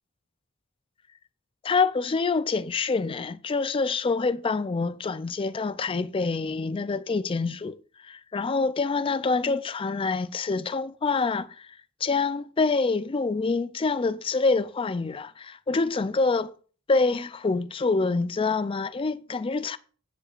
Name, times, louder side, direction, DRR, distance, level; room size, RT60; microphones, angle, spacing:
voice 1, 1.6-7.8 8.0-11.7 12.0-16.5 16.9-19.8, left 4 dB, 25° left, 0.4 m, -26 dB
17.0 x 6.9 x 2.5 m
head